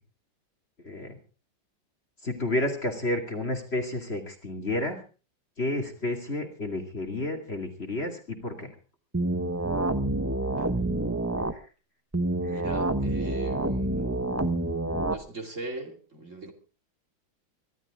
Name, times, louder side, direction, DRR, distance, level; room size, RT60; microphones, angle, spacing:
voice 1, 0.8-1.2 2.2-5.0 5.6-8.7 11.5-11.7 12.5-12.6, left 2 dB, 35° left, 2.6 m, -31 dB
sound 1, 9.1-11.5 12.1-15.1, right 2 dB, 15° right, 0.6 m, -27 dB
voice 2, 12.5-14.1 15.1-16.5, right 3 dB, 40° right, 3.0 m, -40 dB
24.0 x 12.5 x 3.7 m
omnidirectional pair, 2.1 m